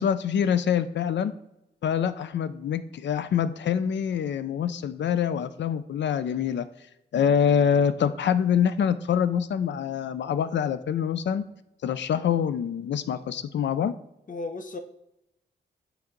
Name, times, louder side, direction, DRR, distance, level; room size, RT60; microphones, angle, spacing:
voice 1, 0.0-1.3 1.8-6.7 7.1-11.5 11.8-13.9, left 8 dB, 70° left, 13 dB, 0.5 m, -25 dB
voice 2, 14.3-14.8, left 3 dB, 45° left, 6 dB, 0.8 m, -35 dB
8.6 x 3.3 x 3.9 m, 0.87 s
cardioid pair, 60°, 19 cm